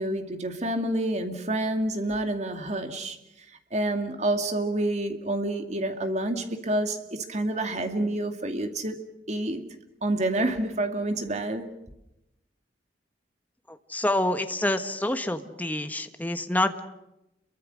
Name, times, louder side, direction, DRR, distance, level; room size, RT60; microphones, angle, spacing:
voice 1, 0.0-3.2 3.7-9.0 9.3-9.6 10.0-11.7, right 1 dB, 40° right, 2.3 m, -28 dB
voice 2, 13.7-16.8, left 1 dB, 10° left, 1.4 m, -27 dB
29.5 x 23.0 x 6.4 m
head